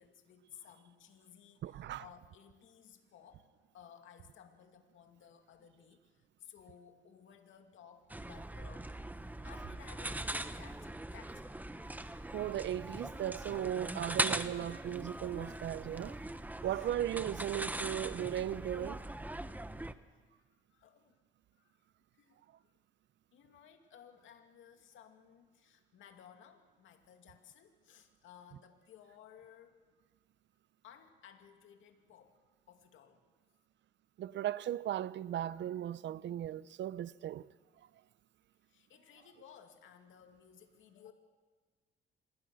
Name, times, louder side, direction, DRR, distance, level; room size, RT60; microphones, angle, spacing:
voice 1, 0.0-3.4 3.7-8.9 9.3-11.5 16.7-16.9 20.1-21.2 21.6-21.8 22.1-22.7 23.3-29.8 30.8-32.4 32.7-33.2 38.7-41.1, left 8 dB, 80° left, 2.5 m, -58 dB
voice 2, 1.6-2.0 12.3-16.2 16.6-19.0 34.2-37.5, right 11 dB, 65° right, 0.7 m, -37 dB
sound 1, 8.1-19.9, right 1 dB, 10° right, 1.1 m, -40 dB
26.5 x 21.5 x 6.5 m
cardioid pair, 90°, 20 cm